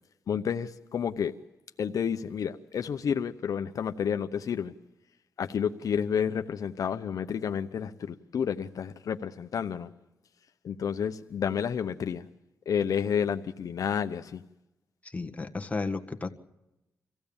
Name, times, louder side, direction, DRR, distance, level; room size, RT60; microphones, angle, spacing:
voice 1, 0.3-1.3 1.8-4.7 5.4-9.9 10.6-12.3 12.7-14.4, left 7 dB, 70° left, 0.8 m, -30 dB
voice 2, 15.1-16.3, left 3 dB, 25° left, 1.7 m, -33 dB
26.0 x 16.0 x 7.2 m
cardioid pair, 75°, 6 cm